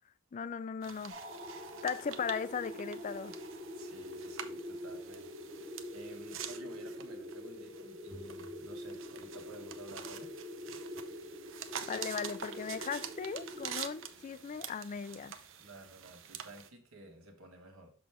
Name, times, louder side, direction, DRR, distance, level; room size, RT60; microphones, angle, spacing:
voice 1, 0.3-1.2 1.8-3.3 11.9-15.4, left 6 dB, 35° left, 0.3 m, -37 dB
sound 1, 0.8-16.7, right 8 dB, 65° right, 0.6 m, -47 dB
sound 2, 1.1-14.3, left 1 dB, 40° right, 2.0 m, -45 dB
voice 2, 3.8-5.3 5.6-10.3 15.6-17.9, right 2 dB, 85° right, 1.5 m, -53 dB
sound 3, 8.1-9.9, right 1 dB, 5° left, 1.6 m, -56 dB
6.1 x 6.1 x 3.5 m
head